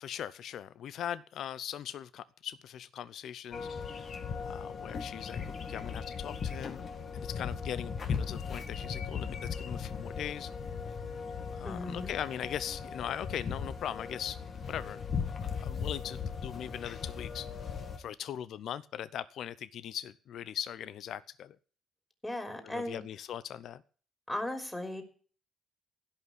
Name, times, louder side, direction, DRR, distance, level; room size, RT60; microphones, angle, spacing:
voice 1, 0.0-4.1 4.4-5.4 5.7-6.8 7.1-10.5 11.5-17.5 18.0-21.6 22.6-23.8, left 10 dB, 70° left, 17 dB, 0.6 m, -40 dB
sound 1, 3.5-18.0, left 6 dB, 50° left, 2.1 m, -38 dB
voice 2, 11.6-12.1 22.2-23.0 24.3-25.0, left 1 dB, 10° left, 5 dB, 3.5 m, -36 dB
16.0 x 5.8 x 9.7 m, 0.43 s
cardioid pair, 90°, 0 cm